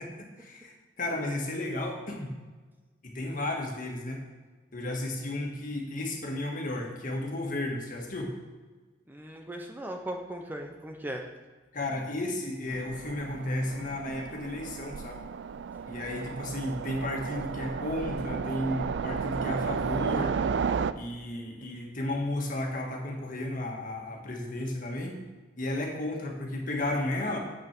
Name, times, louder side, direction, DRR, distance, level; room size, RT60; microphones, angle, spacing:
voice 1, 0.0-2.3 3.0-4.2 4.7-8.3 11.7-15.2 15.9-20.4 20.9-25.2 25.6-27.4, left 1 dB, 50° left, 1 dB, 1.6 m, -33 dB
voice 2, 9.1-11.3, right 1 dB, 10° right, 3 dB, 0.7 m, -38 dB
Train, 12.7-20.9, right 6 dB, 80° right, 0.4 m, -33 dB
8.1 x 5.9 x 6.0 m, 1.3 s
head